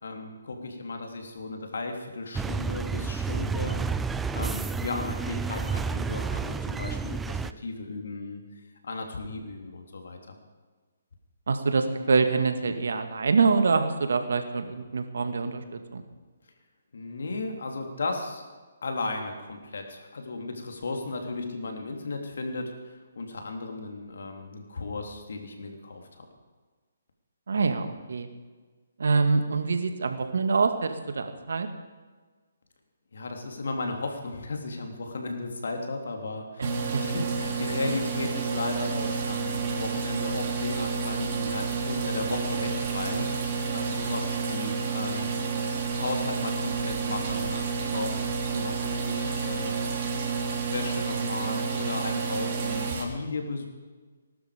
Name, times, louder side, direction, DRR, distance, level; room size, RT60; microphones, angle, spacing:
voice 1, 0.0-3.8 4.3-8.4 8.8-10.4 16.9-18.5 18.8-26.3 33.1-45.3 45.9-49.9 50.7-53.7, left 3 dB, 75° left, 3 dB, 3.3 m, -35 dB
sound 1, 2.3-7.5, right 5 dB, 5° right, 0.4 m, -30 dB
voice 2, 11.5-15.6 15.9-16.0 27.5-28.3 29.0-31.7 36.6-37.0, right 4 dB, 75° right, 7 dB, 2.0 m, -25 dB
sound 2, 36.6-53.0, right 5 dB, 35° right, 3.6 m, -30 dB
20.0 x 12.0 x 5.2 m, 1.4 s
hypercardioid pair, 155°, 0 cm